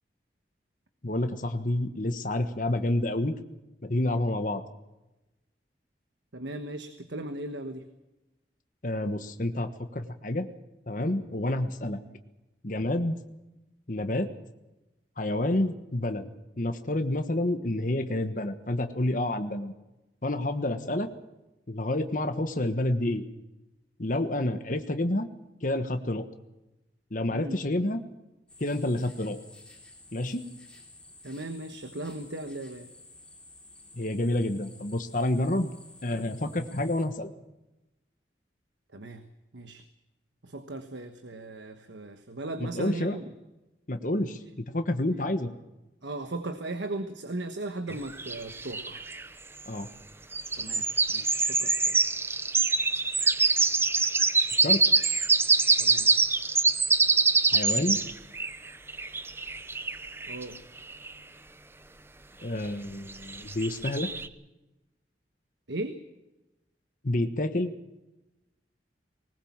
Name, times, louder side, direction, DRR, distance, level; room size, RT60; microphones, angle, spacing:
voice 1, 1.0-3.3 3.8-4.6 8.8-10.5 10.9-12.0 12.6-13.2 13.9-14.3 15.2-16.3 16.6-19.7 20.2-21.1 21.7-23.2 24.0-25.3 25.6-26.2 27.1-28.0 28.6-29.4 30.1-30.4 34.0-35.7 36.0-37.3 42.6-43.2 43.9-44.4 44.7-45.5 49.7-49.9 54.6-54.8 57.5-58.0 62.4-64.1 67.0-67.7, left 1 dB, 45° left, 8 dB, 1.3 m, -29 dB
voice 2, 6.3-7.9 27.3-27.6 31.2-32.9 38.9-39.3 39.5-39.8 40.4-43.3 46.0-49.1 50.5-52.0 55.8-56.1 60.3-60.7 65.7-66.0, right 2 dB, 90° right, 8 dB, 1.3 m, -37 dB
sound 1, 28.5-37.1, left 2 dB, 5° left, 3.3 m, -52 dB
sound 2, 47.9-49.2 50.3-61.1 63.1-64.3, right 4 dB, 15° right, 0.7 m, -25 dB
20.0 x 19.5 x 7.3 m, 1.0 s
head